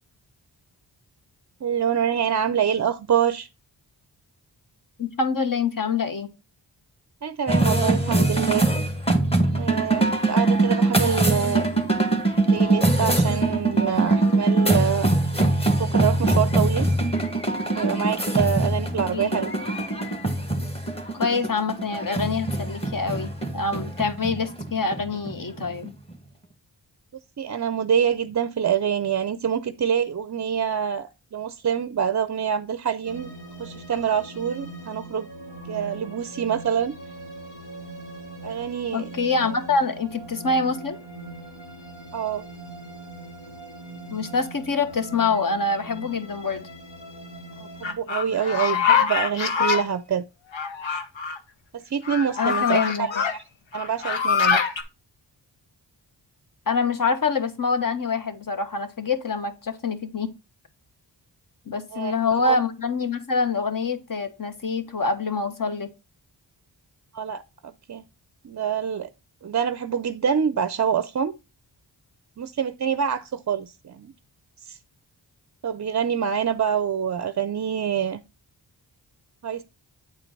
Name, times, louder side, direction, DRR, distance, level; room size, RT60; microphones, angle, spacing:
voice 1, 1.6-3.5 7.2-8.7 9.5-11.7 12.5-15.1 15.8-16.9 17.8-19.5 27.4-33.3 33.6-35.3 35.7-36.9 38.4-39.1 42.1-42.4 47.8-50.2 51.7-53.4 53.7-54.6 61.9-62.6 67.1-68.0 68.4-69.1 69.4-71.3 72.4-74.1 74.6-74.8 75.6-78.2 79.4-79.6, right 8 dB, 40° right, 0.5 m, -26 dB
voice 2, 5.0-6.3 19.1-19.3 21.1-25.9 38.9-41.0 44.1-46.7 52.4-53.1 56.7-60.3 61.7-65.9, left 4 dB, 45° left, 1.3 m, -25 dB
sound 1, 7.5-26.1, right 2 dB, 15° left, 1.6 m, -23 dB
sound 2, 33.0-47.9, right 2 dB, 70° left, 2.6 m, -41 dB
sound 3, 47.8-49.8 50.5-51.4 52.0-53.3 53.7-54.8, left 7 dB, 85° left, 1.0 m, -24 dB
8.5 x 4.4 x 3.9 m
cardioid pair, 60°, 44 cm